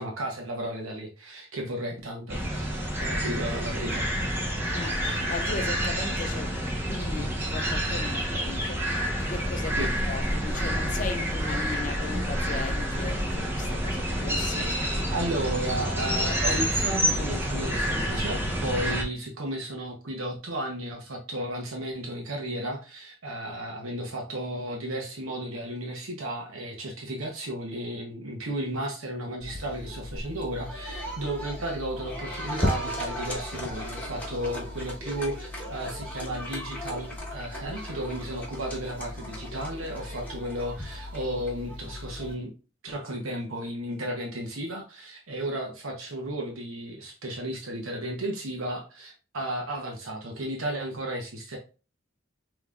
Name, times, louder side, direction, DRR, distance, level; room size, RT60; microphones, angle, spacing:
voice 1, 0.0-4.1 9.8-9.9 15.1-42.5 42.8-51.6, right 1 dB, 75° right, 1.0 m, -34 dB
sound 1, 2.3-19.0, equal, 10° right, 0.8 m, -28 dB
voice 2, 4.5-6.5 6.8-8.9 9.2-14.8, left 4 dB, 40° left, 0.5 m, -37 dB
sound 2, 29.4-42.3, left 1 dB, 10° left, 1.4 m, -36 dB
5.3 x 3.0 x 2.5 m
head